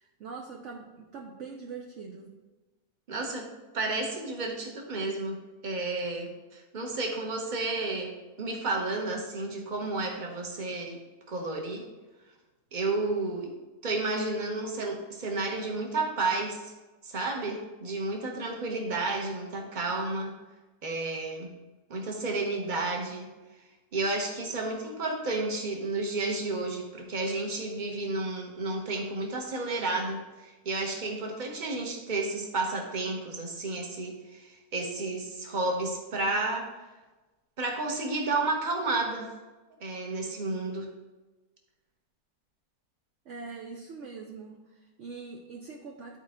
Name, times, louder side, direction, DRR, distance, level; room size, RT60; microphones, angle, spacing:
voice 1, 0.0-2.4 43.3-46.2, right 4 dB, 60° right, 1 dB, 0.9 m, -43 dB
voice 2, 3.1-3.5 3.7-11.0 11.3-11.8 12.7-13.5 13.8-16.7 17.0-20.3 20.8-21.5 21.9-23.3 23.9-36.7 37.6-39.3 39.8-40.9, right 2 dB, 35° right, 1 dB, 1.1 m, -31 dB
11.5 x 4.4 x 3.7 m, 1.2 s
omnidirectional pair, 1.7 m